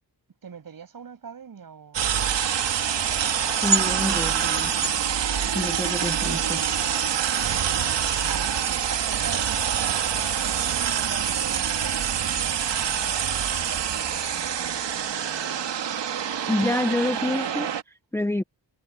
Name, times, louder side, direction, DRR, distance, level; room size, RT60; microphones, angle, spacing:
voice 1, 0.4-2.8 5.4-5.6 8.3-10.1 10.4-10.7 11.1-16.0, right 7 dB, 55° right, 7.1 m, -43 dB
sound 1, 1.9-17.8, right 8 dB, 85° right, 1.9 m, -25 dB
voice 2, 3.5-4.8 5.4-6.7 16.5-17.7 18.1-18.4, left 1 dB, 5° left, 0.6 m, -27 dB
wide cardioid pair, 175°, 42 cm